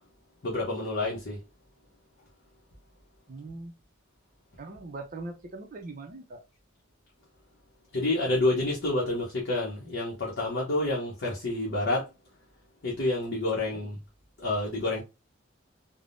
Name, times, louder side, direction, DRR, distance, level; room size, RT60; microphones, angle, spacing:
voice 1, 0.4-1.4 7.9-12.1 12.8-14.0 14.4-15.0, left 2 dB, 55° left, 0.7 m, -28 dB
voice 2, 3.3-3.7 4.6-6.4 13.7-13.8, right 2 dB, 40° right, 0.5 m, -41 dB
3.4 x 2.0 x 2.5 m
head